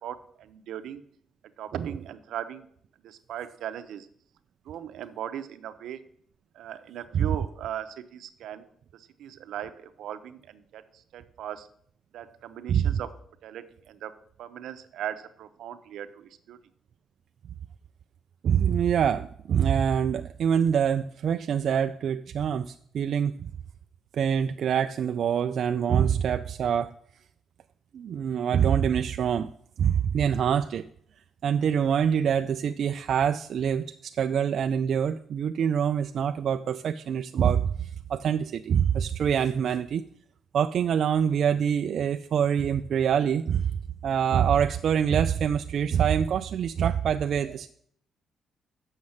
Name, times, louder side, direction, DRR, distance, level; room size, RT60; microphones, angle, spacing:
voice 1, 0.0-1.0 1.6-2.7 3.0-4.1 4.7-6.0 6.5-8.7 8.9-11.7 12.1-13.1 13.4-14.1 14.4-16.6 47.4-47.5, right 10 dB, 75° right, 11 dB, 0.7 m, -38 dB
voice 2, 12.7-13.0 18.4-23.5 24.1-26.9 27.9-29.5 29.8-30.9 31.4-40.0 40.5-43.7 44.0-47.7, right 8 dB, 50° right, 8 dB, 0.3 m, -25 dB
8.0 x 6.4 x 7.1 m, 0.65 s
cardioid pair, 165°, 0 cm